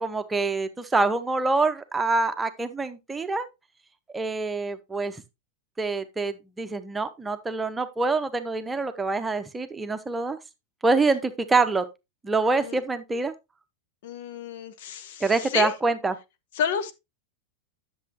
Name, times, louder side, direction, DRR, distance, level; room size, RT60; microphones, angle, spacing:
voice 1, 0.0-3.5 4.1-5.2 5.8-10.4 10.8-11.9 12.2-13.3 15.2-16.1, right 3 dB, 10° right, 0.9 m, -25 dB
voice 2, 14.0-15.7 16.6-16.9, left 7 dB, 55° left, 1.0 m, -30 dB
10.5 x 7.0 x 3.0 m
figure-of-eight pair, 90°, 0 cm